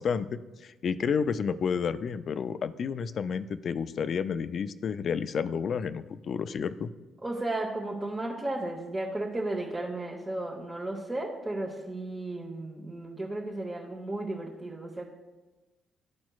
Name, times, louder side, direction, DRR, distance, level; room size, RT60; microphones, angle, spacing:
voice 1, 0.0-6.9, left 6 dB, 55° left, 13 dB, 0.3 m, -30 dB
voice 2, 7.2-15.1, right 2 dB, 25° right, -3 dB, 1.1 m, -34 dB
12.0 x 4.3 x 2.3 m, 1.2 s
supercardioid pair, 55°, 0 cm